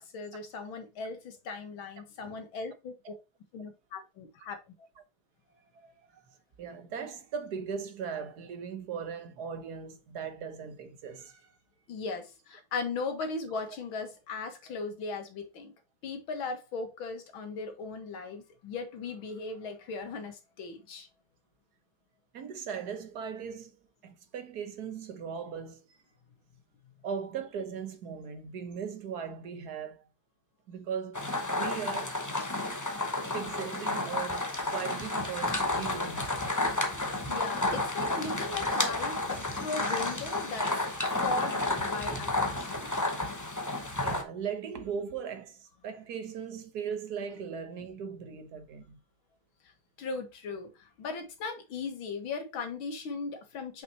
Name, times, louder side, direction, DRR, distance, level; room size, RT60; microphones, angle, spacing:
voice 1, 0.0-3.2 3.5-4.7 11.9-15.7 16.0-21.1 37.0-43.1 50.0-53.8, left 4 dB, 85° left, 2.2 m, -38 dB
voice 2, 5.7-6.2 6.6-11.5 22.3-23.8 24.0-26.0 27.0-30.1 30.7-31.2 31.5-32.2 33.3-36.5 44.0-49.0, right 7 dB, 60° right, 1.4 m, -38 dB
sound 1, 31.1-44.2, left 2 dB, 20° left, 0.4 m, -31 dB
6.0 x 5.7 x 2.8 m
omnidirectional pair, 2.2 m